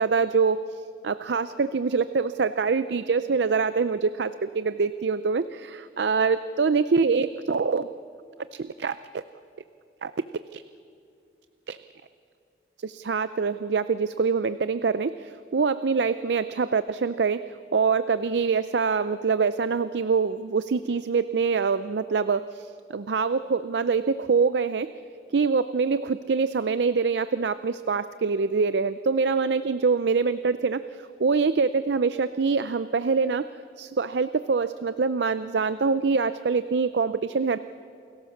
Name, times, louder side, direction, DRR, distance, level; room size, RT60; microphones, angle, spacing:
voice 1, 0.0-5.7 6.0-7.9 8.6-9.2 10.0-10.6 11.7-11.8 12.8-24.9 25.3-33.4 33.8-37.6, right 5 dB, 75° right, 13 dB, 0.5 m, -25 dB
28.5 x 18.0 x 7.2 m, 2.5 s
head